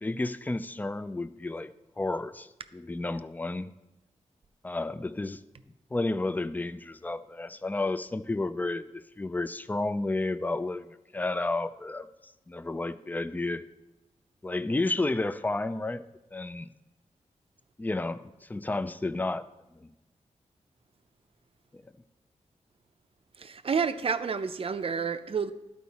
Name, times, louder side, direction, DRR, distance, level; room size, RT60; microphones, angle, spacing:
voice 1, 0.0-3.7 4.6-5.4 5.9-13.6 14.4-16.0 16.3-16.7 17.8-19.4 19.8-19.9, left 2 dB, 15° left, 0.4 m, -31 dB
voice 2, 23.4-25.5, right 6 dB, 50° right, 0.5 m, -29 dB
12.0 x 4.7 x 4.1 m
wide cardioid pair, 90°, 13 cm